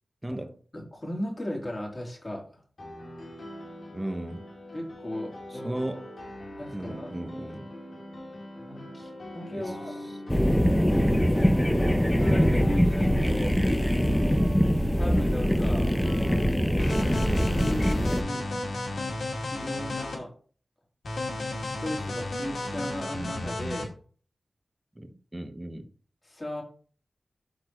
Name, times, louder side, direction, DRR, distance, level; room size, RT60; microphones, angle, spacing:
voice 1, 0.2-0.6 3.9-4.5 5.6-6.1 6.7-7.7 9.5-9.7 24.9-25.9, right 1 dB, 20° right, 1.3 m, -35 dB
voice 2, 0.7-2.6 4.7-5.8 6.6-7.1 8.6-9.9 10.8-11.3 12.3-13.7 14.9-15.9 17.2-18.5 19.5-20.3 21.6-23.9 26.2-26.6, left 1 dB, 30° left, 3.7 m, -36 dB
Piano, 2.8-16.5, left 1 dB, 65° left, 2.9 m, -41 dB
sound 1, 10.3-18.2, equal, 10° left, 1.0 m, -23 dB
sound 2, 16.8-20.2 21.0-23.9, left 1 dB, 85° left, 2.3 m, -33 dB
12.0 x 4.4 x 3.2 m
cardioid pair, 45°, 0 cm